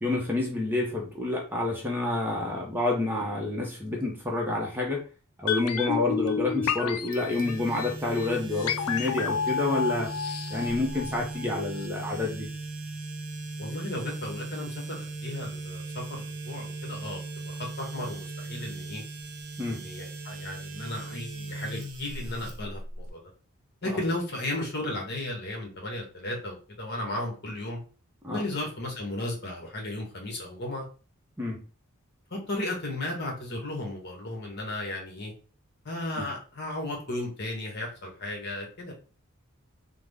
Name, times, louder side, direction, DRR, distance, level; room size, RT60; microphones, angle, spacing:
voice 1, 0.0-5.0 5.4-10.1 10.5-12.5 19.6-19.8 28.2-28.4 31.4-31.6 36.2-36.3, left 2 dB, 10° right, -1 dB, 0.6 m, -28 dB
sound 1, 5.5-11.5 11.8-11.9, left 6 dB, 85° left, 0.4 m, -31 dB
sound 2, 7.1-23.1, right 2 dB, 90° right, 0.8 m, -38 dB
voice 2, 13.6-19.0 19.7-23.3 23.8-27.8 28.3-30.8 32.3-35.3 35.8-38.9, left 1 dB, 50° left, 0 dB, 1.0 m, -35 dB
3.5 x 2.0 x 3.4 m, 0.36 s
head